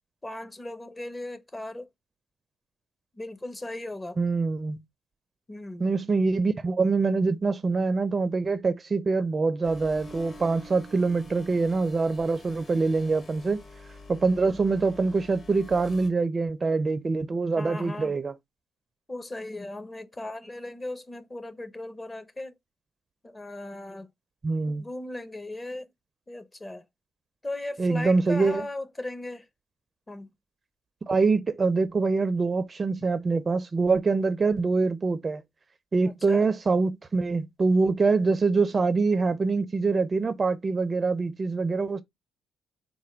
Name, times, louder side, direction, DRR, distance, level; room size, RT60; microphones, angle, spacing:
voice 1, 0.2-1.9 3.1-4.2 5.5-5.9 17.6-18.2 19.1-22.5 23.2-24.1 24.7-25.9 26.3-26.8 27.4-29.5 30.1-30.3 36.1-36.4, left 2 dB, 20° left, 0.7 m, -37 dB
voice 2, 4.2-4.8 5.8-13.6 14.1-18.3 24.4-24.9 27.8-28.6 31.1-35.4 35.9-42.0, right 4 dB, 30° right, 0.5 m, -24 dB
sound 1, 9.6-16.1, left 1 dB, 40° left, 1.2 m, -47 dB
4.2 x 2.2 x 4.4 m
cardioid pair, 90°, 0 cm